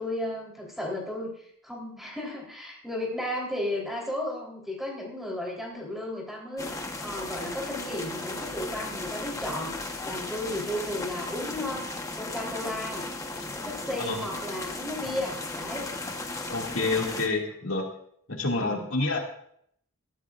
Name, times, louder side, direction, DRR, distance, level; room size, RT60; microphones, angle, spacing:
voice 1, 0.0-11.9 12.1-13.0 13.5-15.9 18.5-18.9, left 1 dB, ahead, -2 dB, 3.6 m, -34 dB
sound 1, 6.6-17.3, left 2 dB, 15° left, 1.1 m, -36 dB
voice 2, 16.5-17.9 18.3-19.2, left 3 dB, 65° left, 0 dB, 2.4 m, -28 dB
22.5 x 14.5 x 2.5 m, 0.67 s
head